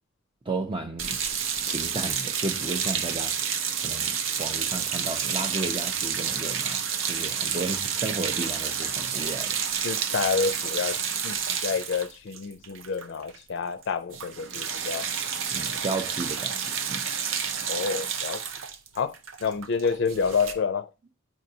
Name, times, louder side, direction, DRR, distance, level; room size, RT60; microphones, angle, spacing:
voice 1, 0.5-1.2 1.7-3.3 3.8-6.8 7.1-9.6 15.5-16.6 16.9-17.0, right 2 dB, 25° right, 0.5 m, -33 dB
sound 1, 1.0-13.4 13.6-13.8 14.1-20.5, right 7 dB, 75° right, 0.5 m, -30 dB
voice 2, 9.8-11.0 11.2-15.1 17.7-18.4 18.9-19.2 19.4-20.9, left 5 dB, 65° left, 0.4 m, -28 dB
7.7 x 4.7 x 2.7 m
head